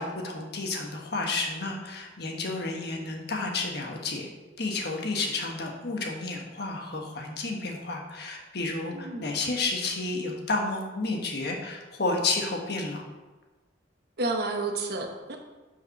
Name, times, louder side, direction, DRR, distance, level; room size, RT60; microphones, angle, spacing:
voice 1, 0.0-4.3 4.6-13.0, left 3 dB, 60° left, 1 dB, 1.3 m, -31 dB
voice 2, 8.9-9.3 14.2-15.3, right 2 dB, 60° right, 2 dB, 1.0 m, -30 dB
5.8 x 5.3 x 5.8 m, 1.2 s
head